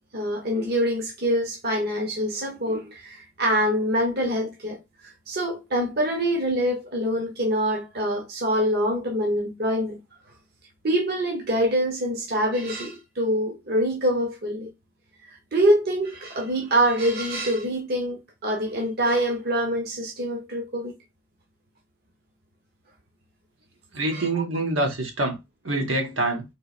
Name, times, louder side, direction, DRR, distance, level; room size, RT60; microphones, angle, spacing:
voice 1, 0.1-4.8 5.3-10.0 10.8-14.7 15.2-20.9 24.1-24.3, equal, 55° right, 1.0 m, -25 dB
voice 2, 23.9-25.4 25.6-26.4, right 2 dB, 85° right, 1.4 m, -25 dB
3.8 x 3.0 x 4.2 m
head